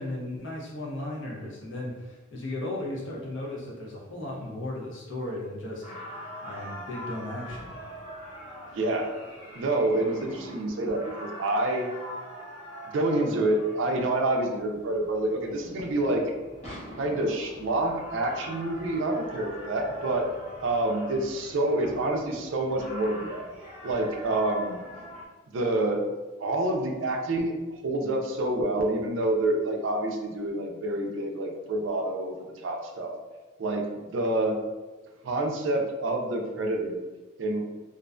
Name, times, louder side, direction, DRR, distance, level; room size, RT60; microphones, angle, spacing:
voice 1, 0.0-5.9 6.4-7.7, left 1 dB, 65° left, -4 dB, 0.7 m, -35 dB
sound 1, 5.8-25.3, equal, 30° left, 0.8 m, -43 dB
voice 2, 8.7-9.2 9.6-11.9 12.9-16.3 17.0-20.3 20.6-23.4 23.8-24.8 25.5-26.1 26.4-27.5 27.8-33.1 33.6-34.6 35.2-37.0 37.4-37.6, right 2 dB, 60° right, 3 dB, 0.3 m, -27 dB
2.4 x 2.1 x 2.4 m, 1.2 s
head